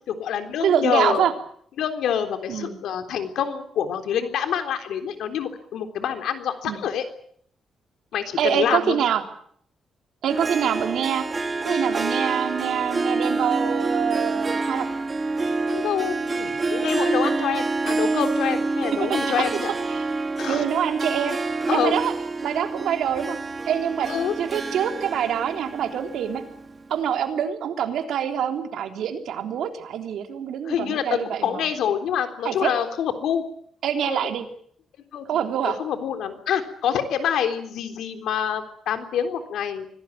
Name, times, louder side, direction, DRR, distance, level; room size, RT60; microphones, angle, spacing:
voice 1, 0.1-1.3 1.8-7.0 8.1-9.0 15.7-19.7 20.4-20.6 21.7-21.9 24.1-24.3 30.7-33.5 34.1-34.3 35.1-35.3 35.6-39.9, left 8 dB, 85° left, 7 dB, 3.6 m, -26 dB
voice 2, 0.6-1.3 2.5-2.8 6.6-6.8 8.4-9.2 10.2-11.2 11.6-14.9 19.0-19.3 19.9-20.1 20.5-21.4 21.7-22.1 22.4-23.4 23.7-24.1 24.4-26.4 26.9-31.7 32.4-32.8 33.8-34.5 35.3-35.8, right 9 dB, 80° right, 5 dB, 3.5 m, -25 dB
Harp, 10.3-26.8, right 3 dB, 25° right, 2.1 m, -27 dB
25.0 x 18.0 x 9.2 m, 0.64 s
cardioid pair, 135°, 0 cm